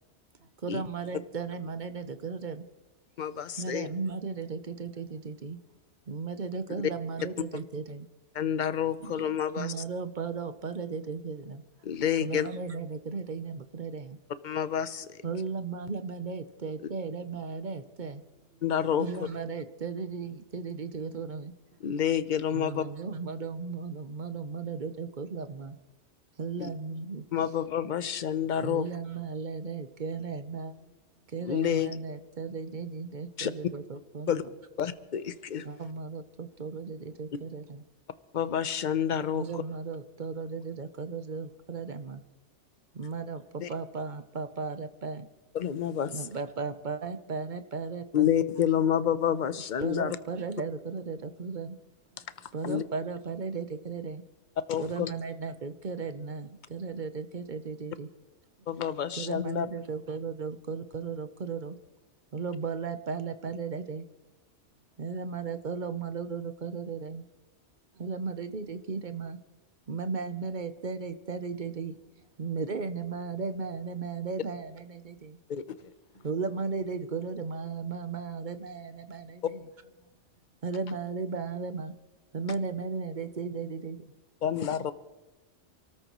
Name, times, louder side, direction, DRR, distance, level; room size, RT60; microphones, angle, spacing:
voice 1, 0.6-2.6 3.6-5.6 6.1-8.1 9.0-9.1 9.6-11.6 12.2-14.2 15.2-18.2 19.0-21.5 22.5-25.8 26.4-27.2 28.6-30.7 31.3-34.4 35.6-37.8 39.3-42.2 42.9-45.3 46.1-48.3 49.8-51.8 52.5-54.2 54.8-58.1 59.2-61.8 62.3-64.1 65.0-67.2 68.0-69.4 69.9-71.9 72.4-75.4 76.2-79.6 80.6-81.9 82.3-84.1, right 5 dB, 45° right, 10 dB, 0.9 m, -36 dB
voice 2, 3.2-3.9 8.3-9.8 11.8-12.5 14.4-15.2 18.6-19.3 21.8-22.8 26.6-26.7 27.3-28.9 31.4-31.9 33.4-33.5 34.3-34.4 34.8-35.7 38.3-39.6 43.6-43.7 45.5-46.3 48.1-50.2 52.6-52.8 54.7-55.1 58.7-59.7 75.5-75.9 84.4-84.9, left 9 dB, 45° left, 13 dB, 0.8 m, -29 dB
voice 3, 30.7-31.3 43.4-43.6 52.1-52.4 67.9-68.2 76.1-76.3 80.0-80.4, right 3 dB, 65° right, 6 dB, 1.5 m, -64 dB
28.0 x 13.5 x 3.1 m, 1.1 s
omnidirectional pair, 1.2 m